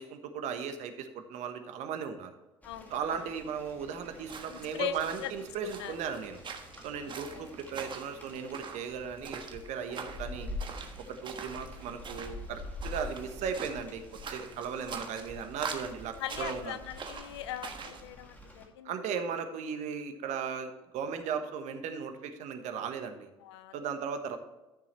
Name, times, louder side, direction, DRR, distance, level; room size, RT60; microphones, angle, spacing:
voice 1, 0.0-2.3 2.9-6.4 6.8-10.5 11.1-14.0 14.3-16.7 18.8-23.3 23.7-24.4, right 6 dB, 55° right, 7 dB, 1.2 m, -37 dB
voice 2, 2.6-3.3 4.5-5.3 5.7-6.0 7.1-7.5 16.2-19.0 23.4-23.7, left 11 dB, 75° left, 13 dB, 0.6 m, -40 dB
Rain, 2.6-18.6, left 2 dB, 10° left, 2.4 m, -47 dB
sound 1, 4.2-18.0, right 5 dB, 35° right, 1.3 m, -44 dB
13.0 x 7.0 x 3.2 m, 1.0 s
figure-of-eight pair, 65°, 14 cm